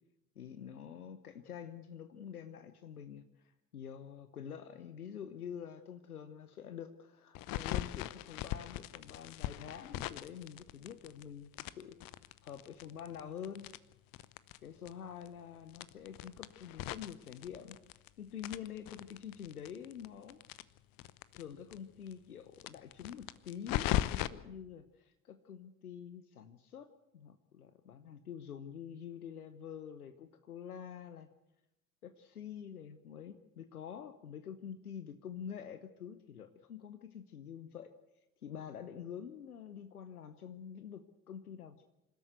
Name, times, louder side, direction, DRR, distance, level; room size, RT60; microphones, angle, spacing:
voice 1, 0.4-12.0 12.4-13.7 14.6-17.8 18.2-20.4 21.3-31.3 32.0-37.9 38.4-41.8, left 8 dB, 80° left, 10 dB, 0.9 m, -47 dB
sound 1, 7.3-11.2 11.5-14.6 14.9-15.0 15.2-15.3 15.7-18.1 18.4-21.4 21.7-21.8 22.1-22.2 22.6-24.3, left 14 dB, 50° left, 0.9 m, -38 dB
26.5 x 13.0 x 8.1 m, 0.91 s
figure-of-eight pair, 55°, 44 cm